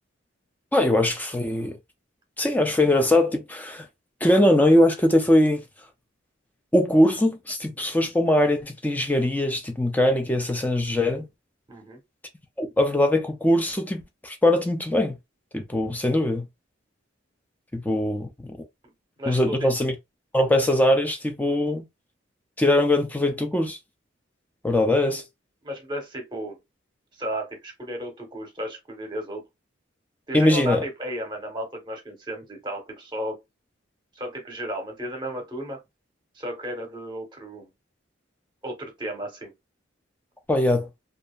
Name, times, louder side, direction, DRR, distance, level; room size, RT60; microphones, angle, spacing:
voice 1, 0.7-1.8 2.4-3.9 4.2-5.6 6.7-11.3 12.6-15.2 15.5-16.5 17.7-18.6 19.3-19.9 20.3-21.9 22.6-23.8 24.6-25.2 30.3-30.8 40.5-40.9, left 1 dB, 10° left, 0.4 m, -21 dB
voice 2, 11.7-12.0 19.2-19.7 25.6-26.6 27.2-29.4 30.3-33.4 34.1-35.8 36.3-37.7 38.6-39.5, right 1 dB, 25° right, 0.9 m, -34 dB
2.8 x 2.4 x 2.2 m
head